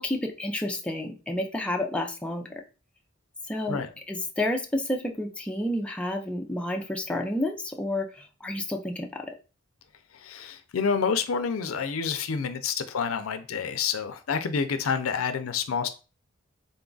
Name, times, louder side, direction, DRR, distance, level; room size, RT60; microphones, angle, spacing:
voice 1, 0.0-2.5 3.5-3.8 4.1-9.3, left 1 dB, 5° left, 0.4 m, -30 dB
voice 2, 10.1-15.9, left 6 dB, 85° left, 0.5 m, -28 dB
3.9 x 2.3 x 3.8 m
head